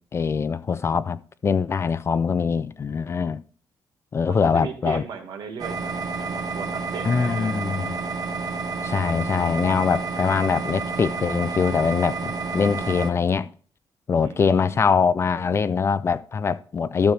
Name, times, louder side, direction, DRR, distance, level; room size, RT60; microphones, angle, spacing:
voice 1, 0.1-3.4 4.1-5.0 7.0-8.0 8.8-13.5 14.1-17.1, left 6 dB, 35° left, 0.4 m, -23 dB
voice 2, 4.3-7.8 14.2-14.8, right 6 dB, 85° right, 1.8 m, -37 dB
sound 1, 5.6-13.1, right 4 dB, 55° right, 1.5 m, -30 dB
12.5 x 6.5 x 3.2 m
cardioid pair, 130°, 7 cm